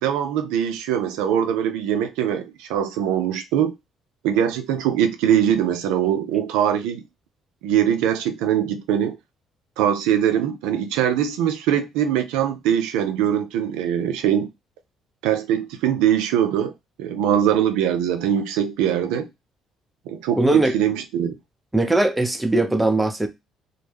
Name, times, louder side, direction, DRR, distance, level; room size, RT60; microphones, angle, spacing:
voice 1, 0.0-3.7 4.2-7.0 7.6-9.2 9.8-14.5 15.2-16.7 17.0-19.3 20.1-21.3, right 9 dB, 80° right, 0.3 m, -22 dB
voice 2, 20.4-20.7 21.7-23.3, right 2 dB, 10° right, 0.5 m, -20 dB
2.0 x 2.0 x 3.2 m
hypercardioid pair, 55°, 0 cm